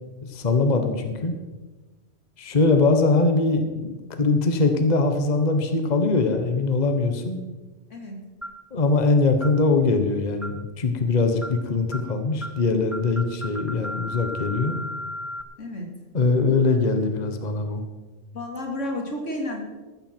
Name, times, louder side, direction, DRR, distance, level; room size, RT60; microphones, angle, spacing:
voice 1, 0.3-1.4 2.4-7.4 8.7-14.8 16.1-17.8, left 3 dB, 35° left, 6 dB, 1.2 m, -22 dB
sound 1, 8.4-8.7 9.4-9.6 10.4-10.7 11.4-11.6 11.9-12.1 12.4-12.6 12.9-15.4, left 1 dB, ahead, 0.5 m, -35 dB
voice 2, 18.3-19.6, left 1 dB, 80° left, 1 dB, 2.8 m, -31 dB
14.5 x 13.5 x 4.5 m, 1.2 s
omnidirectional pair, 1.3 m